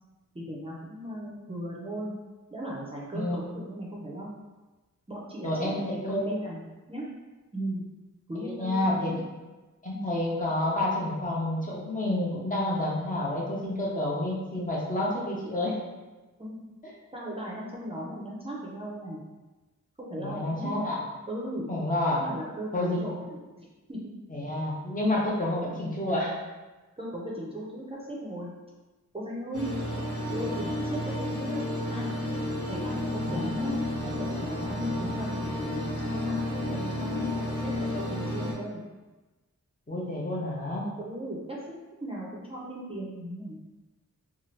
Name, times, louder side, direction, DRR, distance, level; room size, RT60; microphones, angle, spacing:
voice 1, 0.3-2.1 2.5-4.3 5.1-6.6 6.9-7.1 7.5-7.8 8.3-9.2 16.4-16.6 17.1-19.2 20.0-20.8 21.3-21.7 22.1-24.0 27.0-28.5 29.1-29.7 30.3-31.6 31.9-32.1 32.7-33.8 34.0-37.3 37.6-38.8 41.0-41.6 42.0-43.6, right 1 dB, 20° right, -5 dB, 0.5 m, -37 dB
voice 2, 5.4-6.4 8.4-9.1 9.8-15.8 20.2-21.0 21.7-22.2 22.7-23.1 24.3-26.4 33.2-33.5 39.9-40.9, left 1 dB, 25° left, -5 dB, 0.6 m, -29 dB
sound 1, 29.5-38.5, left 1 dB, 75° left, 0.9 m, -31 dB
2.7 x 2.3 x 3.1 m, 1.2 s
wide cardioid pair, 105°, 31 cm